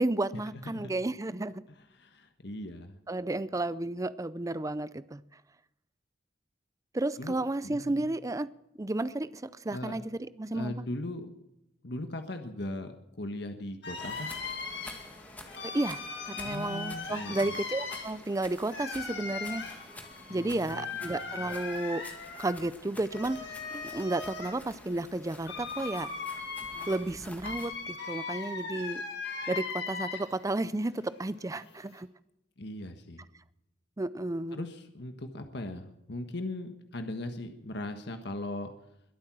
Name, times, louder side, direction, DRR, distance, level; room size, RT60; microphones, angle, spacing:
voice 1, 0.0-1.6 3.1-5.2 6.9-8.5 8.8-10.9 15.6-16.0 16.3-19.6 20.3-22.0 22.4-26.1 26.9-29.0 29.5-32.1 34.0-34.6, right 2 dB, 20° right, 0.5 m, -32 dB
voice 2, 0.5-0.9 1.9-3.0 7.2-7.4 7.6-8.1 9.7-10.0 10.5-11.3 11.8-14.3 16.4-17.5 20.3-21.1 32.6-33.2 34.5-38.7, left 1 dB, 65° left, 1.4 m, -39 dB
sound 1, 13.8-30.5 30.8-32.0, left 4 dB, 85° left, 5.3 m, -39 dB
sound 2, 14.0-27.7, left 1 dB, 10° left, 2.1 m, -49 dB
22.5 x 8.9 x 6.1 m
head